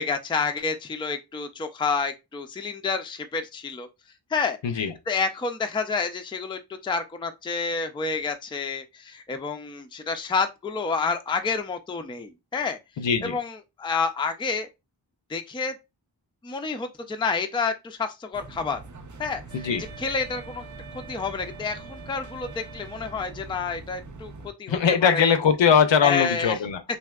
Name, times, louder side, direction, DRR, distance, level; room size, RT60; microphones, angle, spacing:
voice 1, 0.0-3.9 4.3-4.6 5.1-12.8 13.2-14.7 15.3-15.7 16.4-18.8 19.2-19.4 20.0-20.7 20.9-24.3 24.6-25.2 26.0-26.6, left 4 dB, 15° left, 0.3 m, -29 dB
voice 2, 13.0-13.4 19.5-19.8 24.7-26.8, left 7 dB, 75° left, 0.6 m, -21 dB
sound 1, 18.3-24.5, right 3 dB, 45° right, 0.5 m, -43 dB
Wind instrument woodwind instrument, 19.5-23.7, right 4 dB, 90° right, 0.9 m, -47 dB
3.3 x 2.7 x 2.3 m
wide cardioid pair, 65°, 45 cm